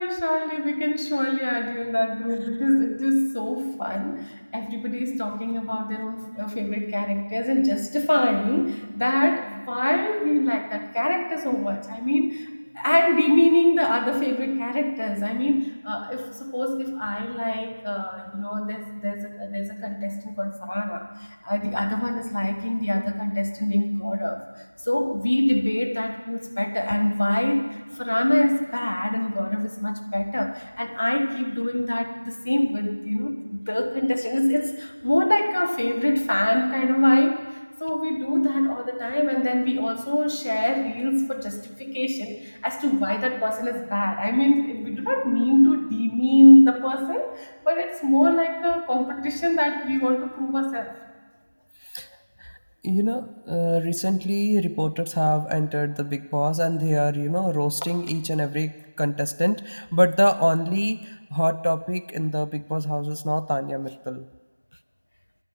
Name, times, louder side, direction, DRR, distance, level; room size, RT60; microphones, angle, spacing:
voice 1, 0.0-21.1 21.4-24.4 24.9-37.5 37.8-50.9, left 1 dB, 15° left, 5 dB, 0.3 m, -23 dB
voice 2, 52.8-64.3, equal, 85° left, 14 dB, 0.4 m, -24 dB
10.5 x 7.2 x 9.3 m, 1.4 s
figure-of-eight pair, 180°, 0 cm